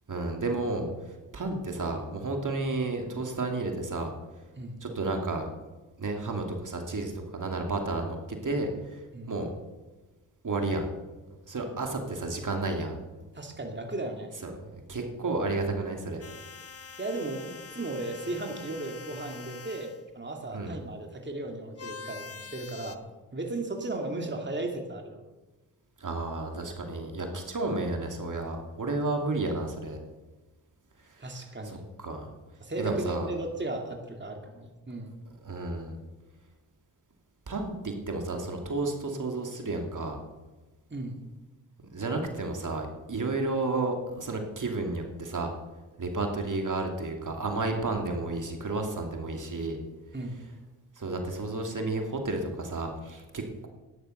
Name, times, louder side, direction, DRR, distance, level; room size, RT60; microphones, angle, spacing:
voice 1, 0.1-4.1 4.8-5.5 6.0-8.2 8.4-9.0 9.3-9.5 10.4-10.9 11.3-13.0 14.4-16.2 20.5-20.8 26.0-30.0 31.0-32.3 32.8-33.3 35.4-36.0 37.5-40.2 41.9-45.5 46.0-49.8 51.0-53.7, right 2 dB, 45° right, 3 dB, 2.6 m, -32 dB
voice 2, 13.3-14.3 17.0-17.5 17.7-23.0 23.3-25.2 31.2-31.8 32.6-35.1 40.9-41.2 50.1-50.4, right 2 dB, 25° right, 3 dB, 2.6 m, -35 dB
sound 1, 16.2-20.0 21.8-23.0, left 5 dB, 35° left, 1.2 m, -45 dB
13.0 x 10.5 x 6.6 m, 1.2 s
supercardioid pair, 50°, 43 cm